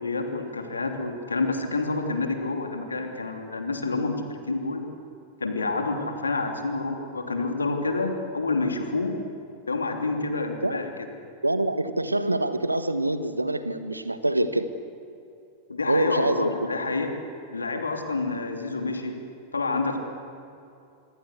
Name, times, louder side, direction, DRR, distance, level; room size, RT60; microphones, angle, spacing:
voice 1, 0.0-4.9 5.4-9.2 9.7-11.1 15.7-17.1 17.5-19.2 19.5-20.0, left 3 dB, 75° left, 5 dB, 3.0 m, -28 dB
voice 2, 11.4-14.7 15.9-16.5, right 1 dB, 85° right, 12 dB, 1.4 m, -25 dB
26.5 x 24.0 x 8.3 m, 2.6 s
figure-of-eight pair, 90°, 0 cm